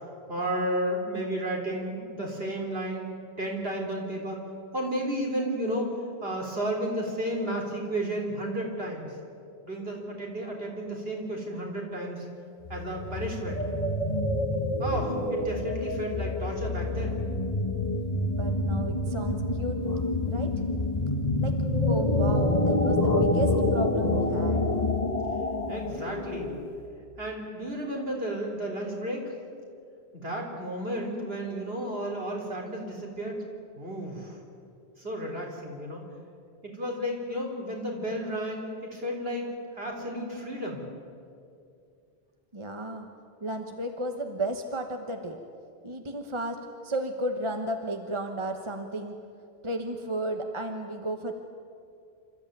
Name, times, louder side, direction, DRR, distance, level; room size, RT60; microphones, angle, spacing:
voice 1, 0.3-3.1 3.4-4.4 4.7-5.9 6.2-9.1 9.6-12.2 12.7-13.6 14.8-17.2 25.7-26.5 27.2-29.3 30.1-33.4 33.8-34.4 35.0-36.0 36.6-39.5 39.8-40.8, right 1 dB, 65° right, 0 dB, 4.1 m, -32 dB
sound 1, 12.6-26.8, left 2 dB, 35° left, 1.5 m, -27 dB
voice 2, 18.3-19.8 20.3-20.5 21.4-21.6 21.8-24.6 42.5-43.1 43.4-45.4 45.8-46.6 46.8-49.2 49.6-51.3, right 1 dB, 30° right, 5 dB, 1.3 m, -33 dB
27.5 x 14.0 x 9.3 m, 2.4 s
omnidirectional pair, 1.1 m